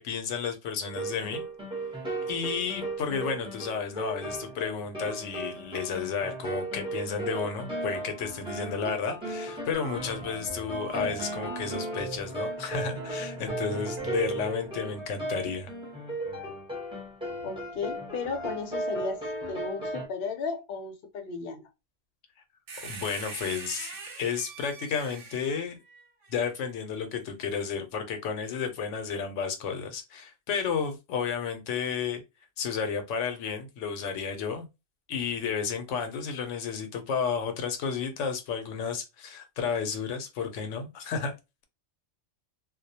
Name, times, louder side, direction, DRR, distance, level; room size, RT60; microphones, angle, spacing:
voice 1, 0.0-1.4 2.3-15.7 22.8-23.9 24.2-25.8 26.3-32.2 32.6-34.7 35.1-41.3, left 6 dB, 85° left, 0.9 m, -32 dB
sound 1, 0.8-20.1, right 1 dB, 5° right, 0.7 m, -36 dB
sound 2, 9.7-12.4 12.7-14.6, right 5 dB, 50° right, 0.3 m, -40 dB
voice 2, 17.4-19.2 19.5-21.7, left 4 dB, 60° left, 0.7 m, -34 dB
sound 3, 22.7-26.5 27.5-27.6, right 4 dB, 85° right, 1.0 m, -42 dB
2.3 x 2.1 x 2.7 m
omnidirectional pair, 1.2 m